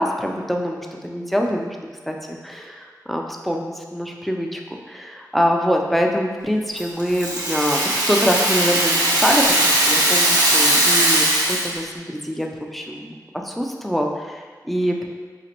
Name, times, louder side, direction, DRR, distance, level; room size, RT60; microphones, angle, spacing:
voice 1, 0.0-1.8 2.1-13.2 13.4-15.0, equal, ahead, 1 dB, 0.4 m, -24 dB
Rattle (instrument), 6.8-11.8, right 1 dB, 70° right, 0.8 m, -19 dB
5.0 x 2.4 x 2.9 m, 1.5 s
wide cardioid pair, 65°, 7 cm